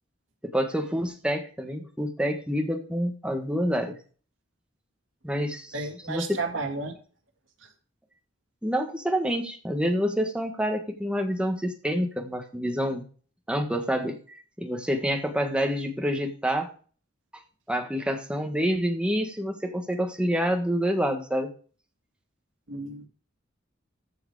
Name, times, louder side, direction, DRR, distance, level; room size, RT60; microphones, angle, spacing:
voice 1, 0.4-3.9 5.2-5.7 6.1-6.4 8.6-13.0 13.5-14.2 14.6-16.7 17.7-21.5, equal, 5° right, 4 dB, 1.5 m, -27 dB
voice 2, 5.7-7.0 7.6-7.7 22.7-23.1, right 3 dB, 80° right, 4 dB, 2.2 m, -32 dB
14.0 x 4.8 x 4.8 m, 0.40 s
head